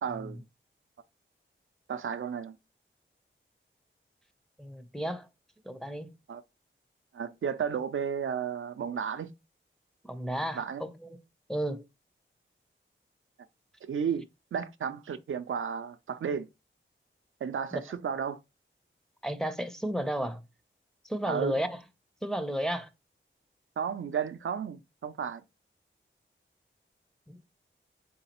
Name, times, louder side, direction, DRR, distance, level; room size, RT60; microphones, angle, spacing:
voice 1, 0.0-0.4 1.9-2.6 6.3-6.4 7.1-9.3 10.5-10.8 13.8-16.5 17.4-18.4 21.3-21.5 23.8-25.4, right 7 dB, 75° right, 0.4 m, -33 dB
voice 2, 4.6-5.3 5.6-6.1 10.0-10.9 11.5-11.8 17.7-17.8 19.2-20.4 21.0-21.8 22.2-22.9 27.3-27.4, right 1 dB, 5° left, 0.5 m, -32 dB
3.9 x 3.8 x 2.9 m
wide cardioid pair, 75°, 21 cm